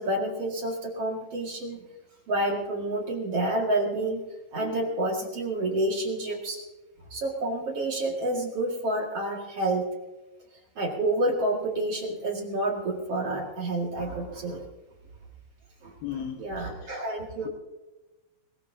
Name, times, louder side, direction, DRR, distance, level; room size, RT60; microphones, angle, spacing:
voice 1, 0.0-1.8 2.3-4.2 4.5-6.6 7.1-9.8 10.8-14.6 15.8-17.5, right 1 dB, 50° right, -2 dB, 1.9 m, -29 dB
voice 2, 16.0-17.0, left 9 dB, 75° left, 2 dB, 2.3 m, -37 dB
21.5 x 20.5 x 2.8 m, 1.1 s
omnidirectional pair, 5.7 m